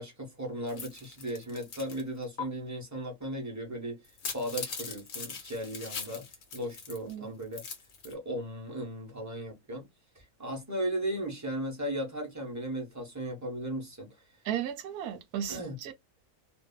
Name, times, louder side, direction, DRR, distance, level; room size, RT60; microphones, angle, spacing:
voice 1, 0.0-4.0 4.3-6.3 6.5-7.6 8.0-9.9 10.1-14.1 15.5-15.8, right 1 dB, 15° right, 0.8 m, -36 dB
sound 1, 0.7-2.0 2.4-2.5 4.0-7.1 7.4-8.1, left 5 dB, 55° left, 0.9 m, -40 dB
voice 2, 14.4-15.9, right 10 dB, 80° right, 1.1 m, -35 dB
2.6 x 2.5 x 2.2 m
omnidirectional pair, 1.6 m